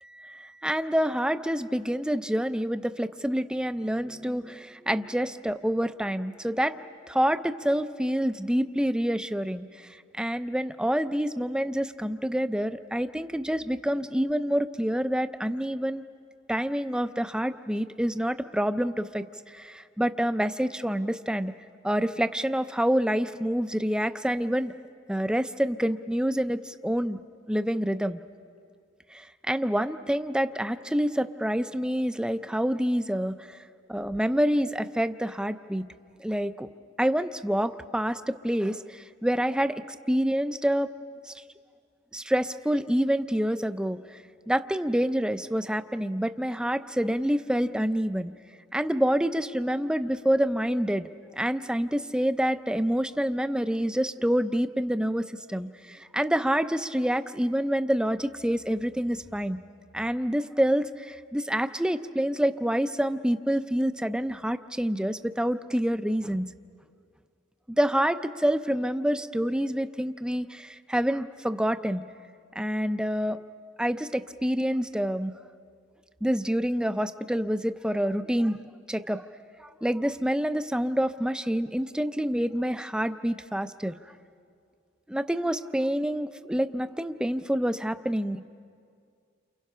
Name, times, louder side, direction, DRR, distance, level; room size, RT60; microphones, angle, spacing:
voice 1, 0.0-6.8 7.1-9.9 10.1-16.0 16.5-21.5 21.8-24.7 25.1-27.2 27.5-28.2 29.1-33.6 33.9-35.8 36.2-36.7 37.0-40.9 41.3-41.4 42.1-44.2 44.5-48.3 48.7-51.1 51.4-59.6 59.9-66.5 67.7-72.0 72.6-73.4 73.8-75.3 76.2-79.2 79.6-83.9 85.1-88.4, equal, 5° right, 11 dB, 0.5 m, -27 dB
29.5 x 28.5 x 5.6 m, 2.2 s
head